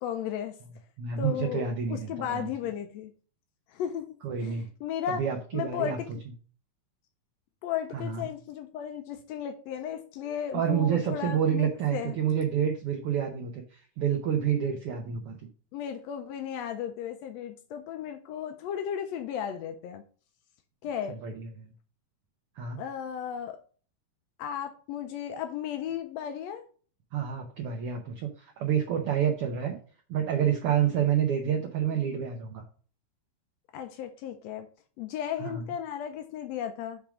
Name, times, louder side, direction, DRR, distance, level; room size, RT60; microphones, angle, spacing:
voice 1, 0.0-0.6 1.2-3.1 3.7-5.2 5.5-6.1 7.6-12.1 15.7-20.0 20.8-21.2 22.8-23.6 24.4-26.6 33.7-34.7 35.0-37.0, left 9 dB, 85° left, 1.5 m, -35 dB
voice 2, 1.0-2.5 4.2-4.7 5.1-6.0 7.9-8.3 10.5-15.4 21.2-21.7 22.6-22.8 27.1-29.8 30.1-32.6 35.4-35.6, right 8 dB, 75° right, 1.3 m, -28 dB
7.5 x 3.5 x 6.0 m
omnidirectional pair, 3.7 m